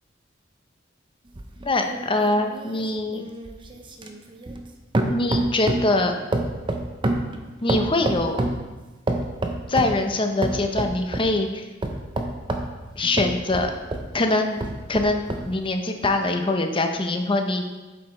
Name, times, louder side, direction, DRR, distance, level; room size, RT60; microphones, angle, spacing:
mysounds-Louise-bouillotte, 1.3-4.7 4.9-6.0 6.3-8.6 9.1-10.0 10.4-11.3 11.8-14.1 14.6-15.5 16.0-16.1, right 1 dB, 25° right, 0.6 m, -27 dB
voice 1, 1.6-3.2 5.1-6.2 7.6-8.4 9.7-11.6 13.0-13.7 14.1-14.6 14.9-17.7, left 2 dB, 25° left, 5 dB, 0.7 m, -23 dB
7.2 x 5.0 x 4.3 m, 1.2 s
head